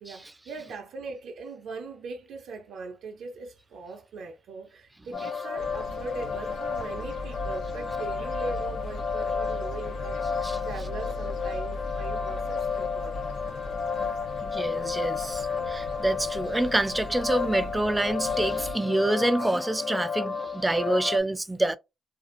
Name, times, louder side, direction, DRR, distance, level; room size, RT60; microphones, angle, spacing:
voice 1, 0.0-13.2, right 4 dB, 75° right, 0.6 m, -40 dB
sound 1, 5.1-21.2, left 6 dB, 45° left, 0.6 m, -32 dB
sound 2, 5.6-18.7, left 1 dB, 70° left, 0.9 m, -39 dB
voice 2, 14.4-21.7, right 1 dB, 15° right, 0.3 m, -27 dB
2.6 x 2.4 x 2.4 m
cardioid pair, 100°, 0 cm